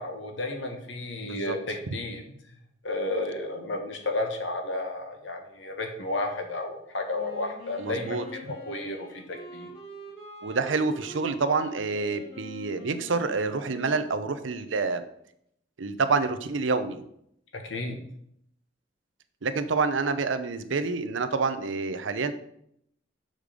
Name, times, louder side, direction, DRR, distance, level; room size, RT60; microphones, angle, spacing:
voice 1, 0.0-2.2 2.8-8.4 8.6-9.7 17.5-18.0, left 2 dB, 75° left, 4 dB, 1.4 m, -32 dB
voice 2, 1.2-1.6 7.8-8.2 10.4-15.0 15.8-17.0 19.4-22.3, right 4 dB, 80° right, 11 dB, 0.7 m, -27 dB
Wind instrument woodwind instrument, 7.1-14.8, left 1 dB, 60° left, 3.1 m, -45 dB
6.6 x 5.3 x 5.0 m, 0.72 s
head